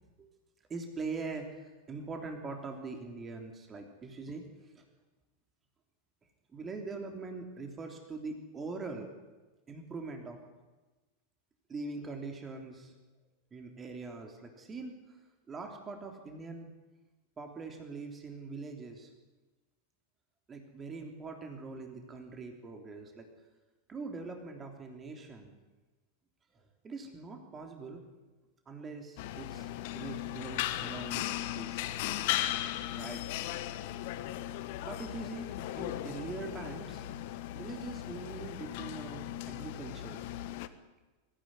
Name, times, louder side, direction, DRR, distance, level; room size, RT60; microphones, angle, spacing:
voice 1, 0.7-4.8 6.5-9.1 9.7-10.4 11.7-12.9 13.5-15.2 15.5-16.7 17.4-19.1 20.5-23.3 23.9-25.5 26.5-28.0 28.6-31.9 32.9-33.3 34.8-37.0 37.5-40.2, right 3 dB, 20° right, 4 dB, 3.3 m, -42 dB
sound 1, 29.2-40.7, left 13 dB, 50° left, 1.3 m, -37 dB
24.0 x 15.5 x 9.7 m, 1.2 s
figure-of-eight pair, 90°, 0 cm